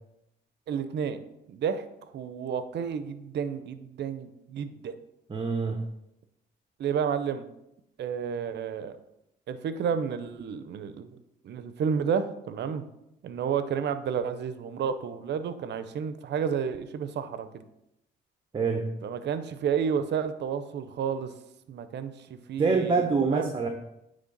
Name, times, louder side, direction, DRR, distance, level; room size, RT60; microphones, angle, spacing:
voice 1, 0.7-1.2 1.5-1.9 2.1-4.9 6.8-7.5 8.0-9.0 9.5-11.2 11.4-12.8 13.2-17.5 19.0-21.3 21.7-23.5, right 7 dB, 60° right, 11 dB, 0.6 m, -31 dB
voice 2, 5.3-5.8 18.5-18.9 22.6-23.7, right 4 dB, 25° right, 4 dB, 0.7 m, -25 dB
9.5 x 3.3 x 3.9 m, 0.84 s
cardioid pair, 90°, 20 cm